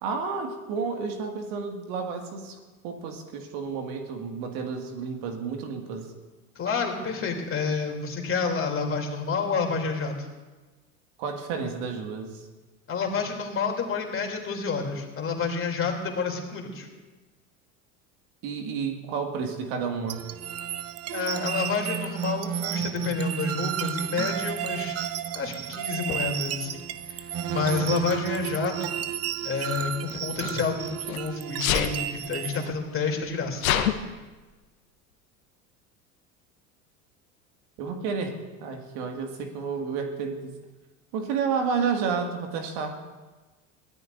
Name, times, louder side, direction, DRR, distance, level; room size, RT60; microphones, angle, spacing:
voice 1, 0.0-2.6 2.8-6.1 11.2-12.5 18.4-20.2 37.8-40.5 41.1-43.0, right 5 dB, 55° right, 3 dB, 2.2 m, -31 dB
voice 2, 6.5-10.3 12.9-16.9 21.1-25.0 25.3-26.8 27.1-29.0 29.4-33.6, left 5 dB, 30° left, 2 dB, 3.2 m, -29 dB
sound 1, 20.1-32.7, right 9 dB, 35° right, 0.9 m, -32 dB
Sneeze, 26.1-26.2 27.3-27.7 29.7-31.2 31.6-32.0 32.7-32.8 33.0-33.9, left 10 dB, 70° left, 1.2 m, -27 dB
23.0 x 17.0 x 2.6 m, 1.2 s
figure-of-eight pair, 75°, 43 cm